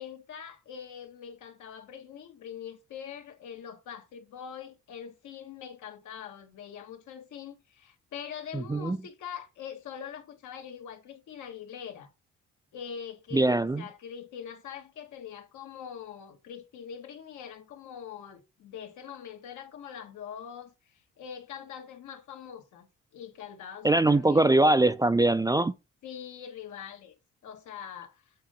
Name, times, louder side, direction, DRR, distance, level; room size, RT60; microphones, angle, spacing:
voice 1, 0.0-12.1 12.7-22.9 23.1-24.5 26.0-27.1 27.4-28.3, left 8 dB, 80° left, 1.7 m, -43 dB
voice 2, 8.5-9.0 13.3-13.8 23.8-25.7, right 2 dB, 15° right, 0.4 m, -22 dB
7.7 x 3.8 x 5.1 m
cardioid pair, 90°, 30 cm